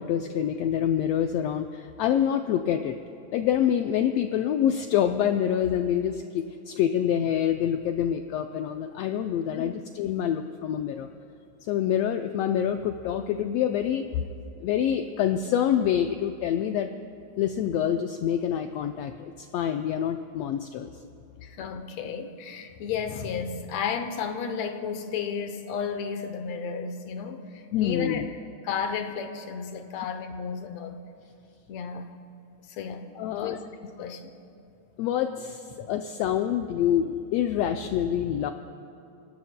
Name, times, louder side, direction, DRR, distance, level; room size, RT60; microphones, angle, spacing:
voice 1, 0.0-3.0 3.3-11.1 11.7-14.1 14.6-16.9 17.4-20.9 27.7-28.3 33.2-33.6 35.0-38.5, left 9 dB, 90° left, 6 dB, 1.4 m, -26 dB
voice 2, 21.4-28.3 28.6-31.0 31.7-32.1 32.7-33.6 34.0-34.4 35.7-35.9, left 6 dB, 70° left, 8 dB, 1.8 m, -33 dB
26.5 x 17.5 x 2.2 m, 2.7 s
omnidirectional pair, 3.4 m